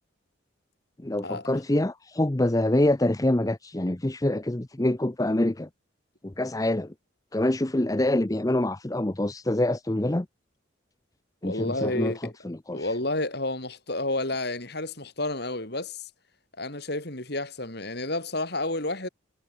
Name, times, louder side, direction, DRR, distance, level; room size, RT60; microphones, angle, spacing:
voice 1, 1.0-5.7 6.2-6.9 7.3-10.3 11.4-12.1 12.4-12.8, left 1 dB, 15° left, 0.6 m, -25 dB
voice 2, 11.4-12.3 12.7-16.1 16.6-19.1, left 2 dB, 55° left, 4.2 m, -30 dB
head